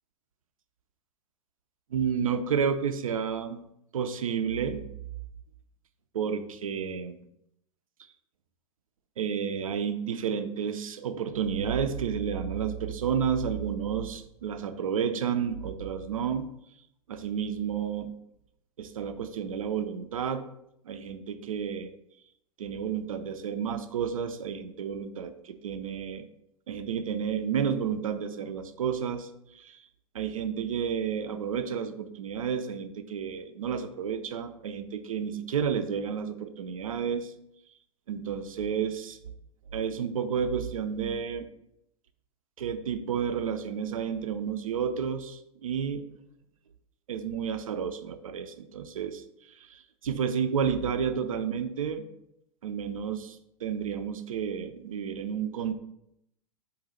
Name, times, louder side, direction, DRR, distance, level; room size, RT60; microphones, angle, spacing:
voice 1, 1.9-3.6 3.9-4.9 6.1-7.2 9.2-16.5 17.1-18.2 18.8-20.4 20.8-21.9 22.6-26.3 26.7-29.8 30.1-37.3 38.1-39.2 39.7-41.5 42.6-46.0 47.1-52.0 52.6-55.7, right 7 dB, 65° right, 9 dB, 0.4 m, -31 dB
3.9 x 2.2 x 4.0 m, 0.79 s
figure-of-eight pair, 95°, 19 cm